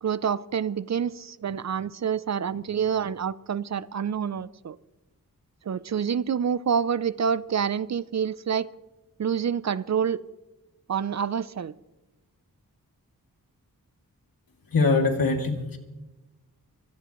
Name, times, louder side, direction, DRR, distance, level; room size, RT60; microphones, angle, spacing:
voice 1, 0.0-4.8 5.7-8.7 9.2-10.2 10.9-11.7, right 7 dB, 50° right, 18 dB, 0.5 m, -27 dB
voice 2, 14.7-15.8, left 3 dB, 75° left, 3 dB, 2.5 m, -23 dB
24.5 x 17.0 x 3.1 m, 1.1 s
wide cardioid pair, 115°, 35 cm